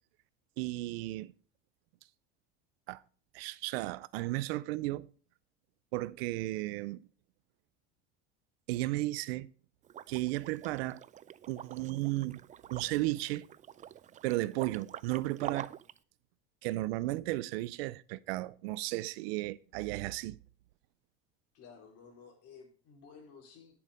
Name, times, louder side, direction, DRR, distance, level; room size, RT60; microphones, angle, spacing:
voice 1, 0.6-1.3 2.9-3.0 3.3-5.1 5.9-7.1 8.7-9.5 10.1-11.0 11.5-12.4 12.7-13.4 14.2-15.7 16.6-20.4, right 18 dB, 85° right, 0.6 m, -34 dB
Liquid, 9.8-16.0, right 10 dB, 25° right, 0.4 m, -46 dB
voice 2, 21.5-23.7, left 6 dB, 55° left, 3.9 m, -54 dB
10.0 x 7.1 x 5.0 m
supercardioid pair, 105°, 30 cm